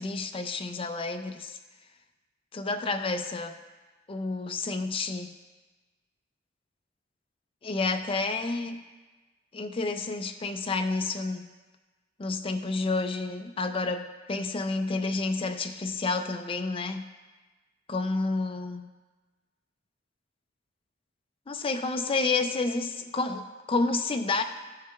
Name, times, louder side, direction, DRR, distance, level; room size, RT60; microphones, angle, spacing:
voice 1, 0.0-1.6 2.5-3.6 4.1-5.3 7.6-8.9 9.5-11.5 12.2-17.1 17.9-18.9 21.5-24.4, left 3 dB, 30° left, 6 dB, 0.4 m, -30 dB
13.5 x 4.7 x 2.3 m, 1.3 s
head